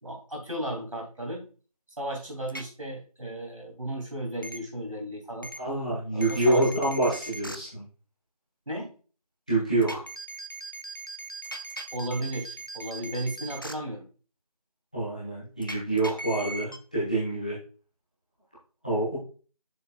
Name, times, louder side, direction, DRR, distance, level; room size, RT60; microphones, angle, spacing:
voice 1, 0.0-1.5 2.0-5.5 6.1-7.2 8.7-8.9 11.9-14.1, right 1 dB, 60° right, 0 dB, 2.8 m, -35 dB
sound 1, 2.5-2.6 4.4-4.6 5.4-5.6 6.2-7.6 9.8-13.7 15.6-16.8, right 2 dB, 35° left, 0.4 m, -39 dB
voice 2, 5.6-7.8 9.5-10.0 14.9-17.6 18.8-19.2, right 2 dB, 10° left, -9 dB, 1.1 m, -26 dB
6.8 x 6.7 x 2.3 m, 0.38 s
figure-of-eight pair, 175°, 19 cm